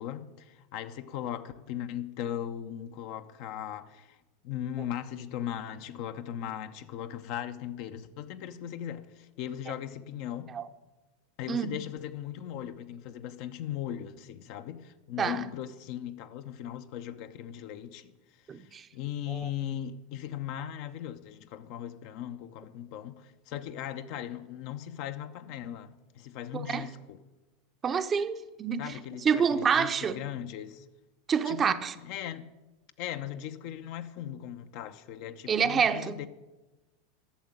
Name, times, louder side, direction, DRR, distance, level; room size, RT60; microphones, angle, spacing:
voice 1, 0.0-4.2 4.4-10.5 11.4-18.1 18.5-18.6 18.9-27.2 28.8-30.8 31.5-31.8 32.0-32.5 33.0-36.3, left 10 dB, 50° left, 0.8 m, -38 dB
voice 2, 11.5-11.8 15.2-15.4 18.5-18.9 19.3-19.5 26.5-26.9 27.8-28.9 29.2-30.2 31.3-31.9 35.5-36.2, right 6 dB, 25° right, 0.7 m, -27 dB
11.5 x 7.2 x 9.0 m
figure-of-eight pair, 85°, 0 cm